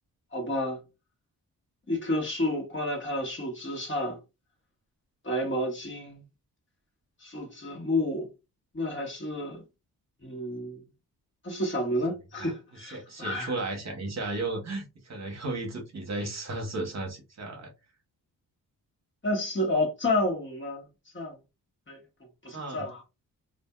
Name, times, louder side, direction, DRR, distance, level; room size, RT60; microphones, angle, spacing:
voice 1, 0.3-0.8 1.9-4.2 5.2-6.2 7.2-8.3 8.7-9.6 10.2-10.8 11.4-13.5 19.2-20.8 21.1-21.4 21.9-22.0 22.4-23.0, left 1 dB, 30° left, 1.4 m, -30 dB
voice 2, 12.8-17.7 22.5-22.9, right 2 dB, 40° right, 1.0 m, -34 dB
2.6 x 2.5 x 2.2 m
cardioid pair, 60°, 40 cm